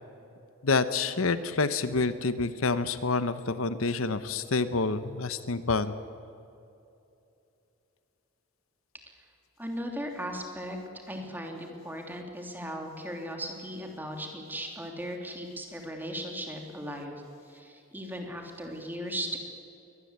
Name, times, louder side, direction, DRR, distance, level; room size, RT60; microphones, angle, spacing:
voice 1, 0.6-5.9, left 3 dB, 70° left, 13 dB, 0.9 m, -28 dB
voice 2, 9.6-10.8 11.1-19.4, equal, 10° right, 3 dB, 3.0 m, -37 dB
22.5 x 19.5 x 8.2 m, 2.7 s
head